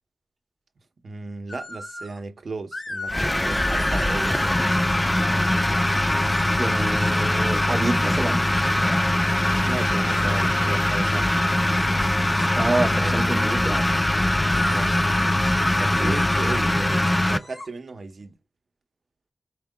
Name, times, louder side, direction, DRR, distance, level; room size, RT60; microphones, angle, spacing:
voice 1, 1.0-4.7 5.3-5.9 9.6-11.3 13.0-13.2 14.5-14.9 15.2-15.4 15.8-18.3, right 3 dB, 75° right, 0.8 m, -35 dB
sound 1, 1.5-2.2 2.7-5.5 6.2-8.9 10.1-13.5 14.5-17.7, left 2 dB, 35° left, 1.2 m, -36 dB
sound 2, 3.1-17.4, left 1 dB, 15° left, 0.4 m, -22 dB
voice 2, 6.6-8.5 12.6-13.9 15.9-16.2, right 2 dB, 25° right, 1.0 m, -27 dB
4.6 x 3.6 x 2.2 m
wide cardioid pair, 115°, 0 cm